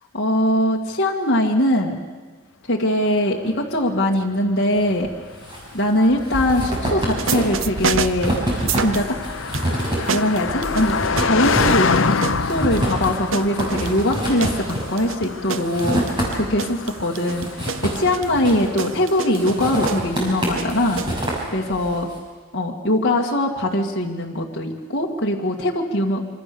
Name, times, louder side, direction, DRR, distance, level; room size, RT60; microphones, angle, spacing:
voice 1, 0.1-2.0 2.7-5.1 5.7-8.3 8.8-9.2 10.1-21.2 21.5-22.1 22.5-26.3, left 1 dB, 50° left, -2 dB, 2.1 m, -21 dB
Car passing by, 3.4-19.9, left 5 dB, 65° left, 0.8 m, -28 dB
sound 1, 5.0-5.6 5.9-16.7 17.0-18.8 19.3-22.0, right 1 dB, 20° right, 6.3 m, -27 dB
sound 2, 7.1-9.2 9.5-21.3, right 5 dB, 65° right, 0.7 m, -30 dB
26.5 x 25.5 x 7.0 m, 1.4 s
head